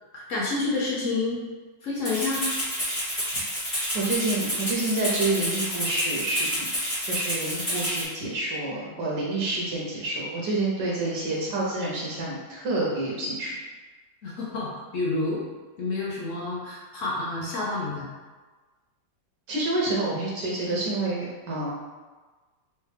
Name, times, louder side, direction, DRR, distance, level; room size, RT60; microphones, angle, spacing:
voice 1, 0.1-1.4 1.8-2.5 14.2-15.4 15.8-18.1, left 3 dB, 65° left, -5 dB, 0.8 m, -29 dB
Rattle (instrument), 2.0-8.0, equal, 20° left, 1.1 m, -29 dB
voice 2, 3.9-6.7 7.0-13.6 19.5-21.7, right 2 dB, 75° right, -4 dB, 1.3 m, -28 dB
3.4 x 3.2 x 3.3 m, 1.3 s
omnidirectional pair, 1.9 m